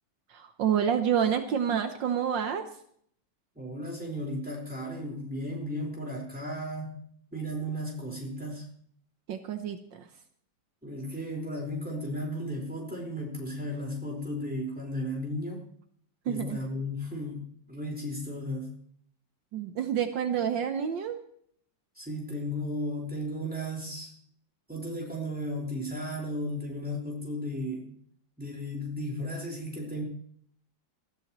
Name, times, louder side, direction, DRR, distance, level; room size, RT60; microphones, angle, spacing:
voice 1, 0.3-2.7 9.3-9.8 16.3-16.6 19.5-21.2, right 8 dB, 75° right, 7 dB, 1.7 m, -28 dB
voice 2, 3.5-7.0 7.3-8.7 10.8-15.6 16.2-18.8 21.9-24.1 24.7-28.0 28.4-30.0, equal, 5° right, -2 dB, 4.7 m, -35 dB
21.0 x 13.5 x 3.1 m, 0.63 s
omnidirectional pair, 2.1 m